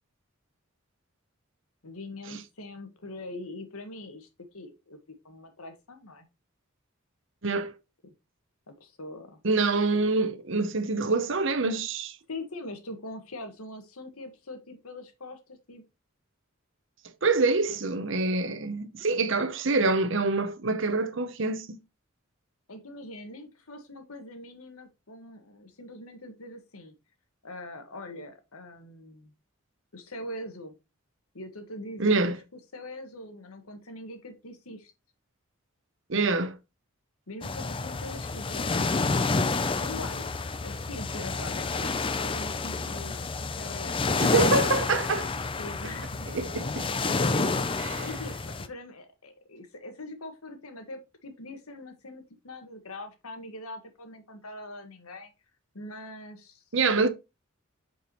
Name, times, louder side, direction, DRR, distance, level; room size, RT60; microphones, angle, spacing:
voice 1, 1.8-4.3 4.5-6.3 8.0-8.1 8.7-9.4 12.3-15.8 22.7-27.0 27.4-29.3 29.9-30.8 31.3-34.9 37.3-39.2 39.8-44.3 45.6-46.3 47.0-55.3 55.7-56.6 57.0-57.1, left 1 dB, 85° left, 1.6 m, -42 dB
voice 2, 7.4-7.7 9.4-12.2 17.2-21.8 32.0-32.4 36.1-36.6 44.2-45.3 46.3-46.9 47.9-48.1 56.7-57.1, right 3 dB, 60° right, 0.8 m, -26 dB
sound 1, 37.4-48.7, left 3 dB, 25° left, 0.4 m, -29 dB
8.3 x 4.6 x 3.0 m
head